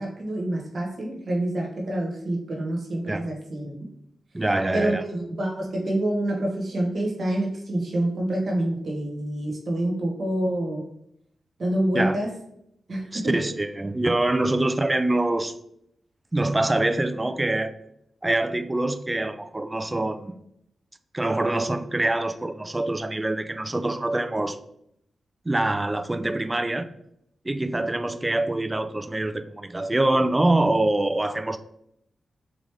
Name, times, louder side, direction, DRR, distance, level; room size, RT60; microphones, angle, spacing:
voice 1, 0.0-3.7 4.7-10.8 11.6-12.3 12.9-13.4, right 1 dB, 55° right, 1.4 m, -27 dB
voice 2, 4.3-5.0 11.9-12.1 13.1-15.5 16.3-17.7 18.2-20.5 21.1-24.6 25.5-26.8 27.4-31.6, right 2 dB, 20° right, 0.4 m, -25 dB
3.8 x 3.1 x 3.5 m
cardioid pair, 60°, 0 cm